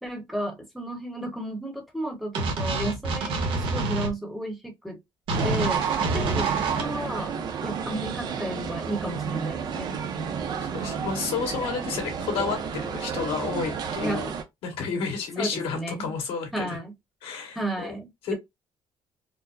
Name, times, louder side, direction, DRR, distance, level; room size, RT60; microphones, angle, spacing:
voice 1, 0.0-5.0 5.4-5.8 6.1-10.4 14.0-14.2 15.4-16.1 16.5-16.9 17.5-18.3, right 1 dB, ahead, 0.9 m, -33 dB
sound 1, 2.3-4.1 5.3-6.8, right 3 dB, 65° right, 1.2 m, -26 dB
sound 2, 5.3-14.4, right 6 dB, 45° right, 0.7 m, -32 dB
voice 2, 10.7-14.3 14.6-16.8 17.2-18.0 18.2-18.3, left 5 dB, 75° left, 1.7 m, -31 dB
4.4 x 2.1 x 2.6 m
cardioid pair, 170°, 10 cm